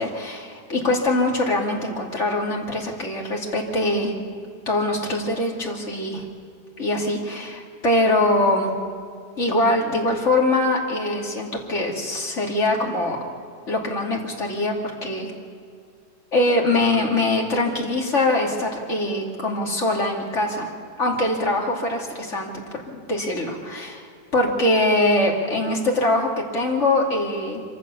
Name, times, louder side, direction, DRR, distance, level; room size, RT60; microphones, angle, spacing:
voice 1, 0.0-4.2 4.7-6.2 6.8-8.7 9.4-13.2 13.7-14.8 15.0-15.3 16.3-20.7 21.0-22.5 22.9-24.1 24.3-27.6, left 2 dB, 40° left, -1 dB, 3.0 m, -23 dB
26.0 x 15.0 x 7.0 m, 2.3 s
omnidirectional pair, 1.9 m